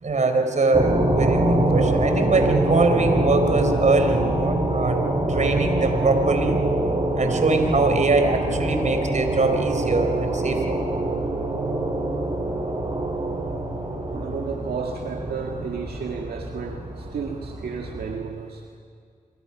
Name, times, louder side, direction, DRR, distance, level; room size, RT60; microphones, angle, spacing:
voice 1, 0.0-6.6 7.2-10.8, right 3 dB, 50° right, 6 dB, 4.1 m, -23 dB
sound 1, 0.7-18.2, right 2 dB, 30° right, 7.4 m, -24 dB
voice 2, 14.1-18.6, right 5 dB, 85° right, 1 dB, 1.8 m, -33 dB
26.5 x 24.5 x 6.0 m, 2.2 s
cardioid pair, 60°, 16 cm